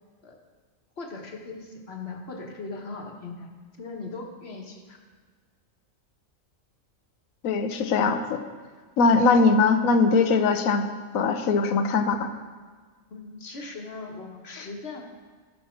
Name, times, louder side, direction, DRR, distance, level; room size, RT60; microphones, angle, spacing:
voice 1, 1.0-3.5 3.8-5.0 13.1-15.0, left 3 dB, 50° left, 2 dB, 1.4 m, -39 dB
voice 2, 7.4-8.4 9.0-10.8 11.1-12.3 14.5-14.7, left 4 dB, 90° left, 8 dB, 1.2 m, -21 dB
12.0 x 6.8 x 4.4 m, 1.5 s
omnidirectional pair, 1.4 m